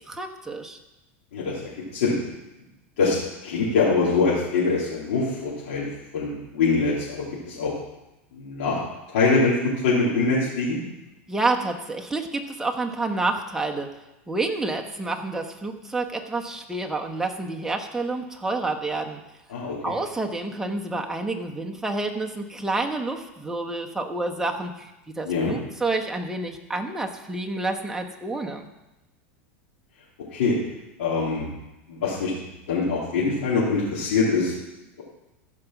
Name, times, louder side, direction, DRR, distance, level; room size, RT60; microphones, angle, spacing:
voice 1, 0.1-0.8 11.3-13.9 14.3-19.2 19.8-28.7, right 2 dB, 5° right, 1 dB, 1.2 m, -29 dB
voice 2, 1.3-2.1 3.0-3.2 3.4-5.9 6.1-7.7 8.4-8.8 9.1-10.8 19.5-19.9 25.3-25.5 30.3-30.6 31.0-31.4 31.9-32.3 32.7-34.5, left 4 dB, 80° left, -8 dB, 3.2 m, -23 dB
14.5 x 5.2 x 6.0 m, 0.97 s
supercardioid pair, 120°, 7 cm